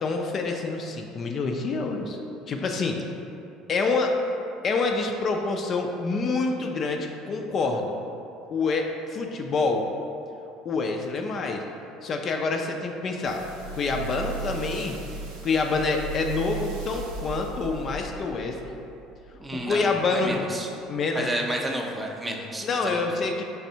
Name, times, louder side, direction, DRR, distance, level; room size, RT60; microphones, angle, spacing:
voice 1, 0.0-2.2 2.5-3.0 3.7-4.2 4.6-7.9 8.5-9.9 10.7-11.6 12.0-13.4 13.7-15.0 15.4-18.8 19.5-20.4 20.9-21.3 22.6-23.4, left 3 dB, 45° left, 3 dB, 0.3 m, -27 dB
sound 1, 13.2-19.7 20.3-20.4, right 4 dB, 80° right, 0.5 m, -37 dB
voice 2, 19.4-20.7 21.1-23.1, right 1 dB, 20° right, 1 dB, 0.5 m, -31 dB
4.0 x 3.3 x 2.7 m, 2.7 s
hypercardioid pair, 65°, 0 cm